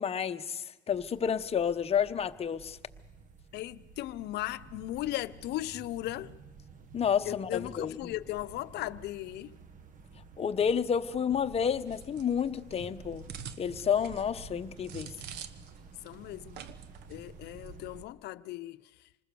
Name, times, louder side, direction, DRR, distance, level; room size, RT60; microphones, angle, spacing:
voice 1, 0.0-2.8 6.9-8.1 10.4-13.3 13.6-15.1, left 7 dB, 35° left, 0.9 m, -30 dB
sound 1, 0.9-18.1, right 4 dB, 50° right, 1.3 m, -51 dB
voice 2, 3.5-6.4 7.3-9.5 16.0-16.6 17.1-18.8, left 16 dB, 80° left, 0.7 m, -37 dB
sound 2, 11.9-15.8 16.1-16.2 16.5-17.1 17.5-17.7, right 8 dB, 85° right, 1.1 m, -46 dB
26.5 x 20.0 x 6.9 m
cardioid pair, 110°, 17 cm